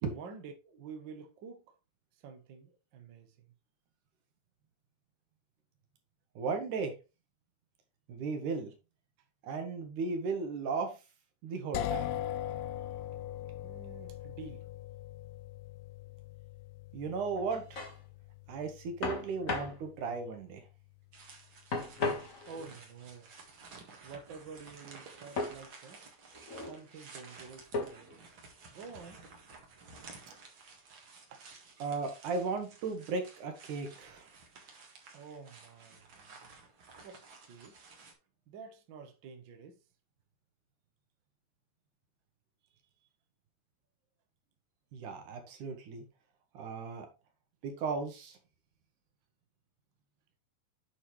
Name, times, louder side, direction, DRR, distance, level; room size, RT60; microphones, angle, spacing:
voice 1, 0.1-1.7 2.1-3.5 13.6-14.7 22.5-23.3 24.0-26.1 26.6-28.2 28.7-29.3 31.3-31.5 35.1-36.5 37.0-37.9 38.5-39.8, right 5 dB, 80° right, 1.0 m, -49 dB
voice 2, 6.4-6.9 8.1-8.7 9.4-11.0 11.4-12.2 16.9-17.8 18.5-20.6 31.8-34.3 44.9-46.1 46.5-47.1 47.6-48.4, right 4 dB, 65° right, 2.9 m, -36 dB
sound 1, 11.7-21.5, left 12 dB, 85° left, 2.3 m, -41 dB
sound 2, 17.4-18.0 19.0-19.8 21.7-22.7 25.4-25.6 26.3-26.8 27.7-28.1, left 3 dB, 40° left, 1.1 m, -36 dB
sound 3, 21.1-38.1, right 4 dB, 45° right, 1.9 m, -54 dB
8.8 x 5.6 x 3.2 m
omnidirectional pair, 4.1 m